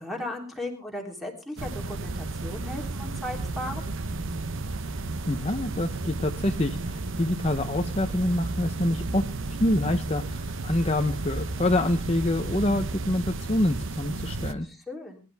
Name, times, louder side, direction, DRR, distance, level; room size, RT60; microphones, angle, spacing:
voice 1, 0.0-3.9 14.6-15.2, left 1 dB, ahead, 2 dB, 3.3 m, -36 dB
sound 1, 1.6-14.5, right 3 dB, 55° right, 0.9 m, -33 dB
voice 2, 5.3-9.3 9.6-14.7, left 1 dB, 25° left, 6 dB, 0.8 m, -26 dB
21.5 x 11.5 x 3.5 m, 0.33 s
head